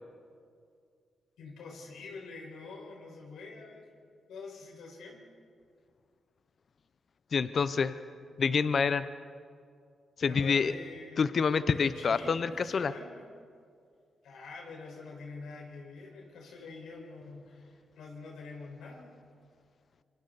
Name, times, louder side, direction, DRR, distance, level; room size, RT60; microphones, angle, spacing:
voice 1, 1.4-3.8 4.3-5.2 10.2-11.3 11.7-13.2 14.2-19.1, left 4 dB, 85° left, 0 dB, 5.0 m, -46 dB
voice 2, 7.3-7.9 8.4-9.0 10.2-10.7 11.2-12.9, left 5 dB, 60° left, 13 dB, 0.7 m, -27 dB
27.0 x 24.5 x 4.1 m, 2.3 s
supercardioid pair, 50°, 0 cm